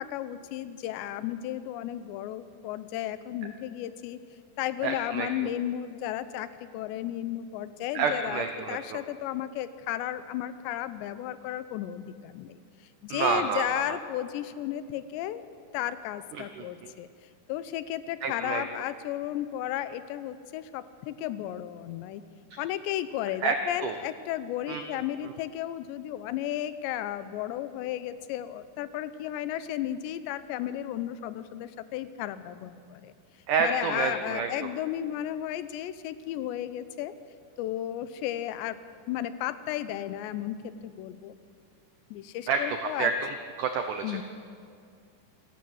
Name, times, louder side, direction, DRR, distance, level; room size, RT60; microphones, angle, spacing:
voice 1, 0.0-4.2 4.6-12.5 13.0-15.4 15.7-17.1 17.5-22.2 22.6-33.1 33.6-37.1 37.6-38.8 39.1-41.3 42.1-43.1 44.0-44.2, left 12 dB, 90° left, 13 dB, 3.0 m, -34 dB
voice 2, 4.8-5.3 7.9-9.0 13.1-14.0 16.3-16.9 18.2-18.6 22.5-22.6 23.4-23.9 24.7-24.8 33.5-34.5 42.5-44.2, right 5 dB, 90° right, 6 dB, 1.8 m, -29 dB
27.0 x 12.5 x 7.9 m, 2.3 s
omnidirectional pair, 4.9 m